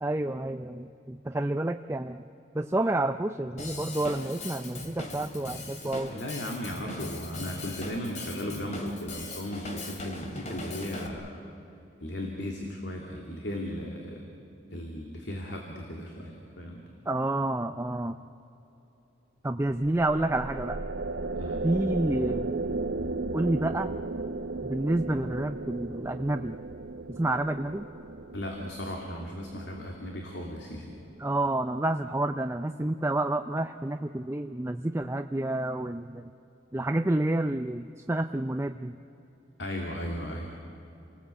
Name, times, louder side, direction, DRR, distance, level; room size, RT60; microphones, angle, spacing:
voice 1, 0.0-2.2 2.5-6.2 17.1-18.2 19.4-20.8 21.6-22.7 23.3-23.9 24.6-26.6 27.1-27.9 31.2-36.3 36.7-39.0, right 1 dB, 15° right, 7 dB, 0.5 m, -29 dB
Drum kit / Drum, 3.6-11.1, left 2 dB, 40° left, 2.6 m, -39 dB
voice 2, 6.1-11.4 12.0-14.3 14.7-16.8 21.4-21.6 28.3-30.9 39.6-40.5, left 1 dB, 70° left, 1 dB, 2.6 m, -36 dB
sound 1, 19.7-31.1, right 3 dB, 75° right, 0.8 m, -35 dB
29.0 x 19.0 x 8.3 m, 3.0 s
head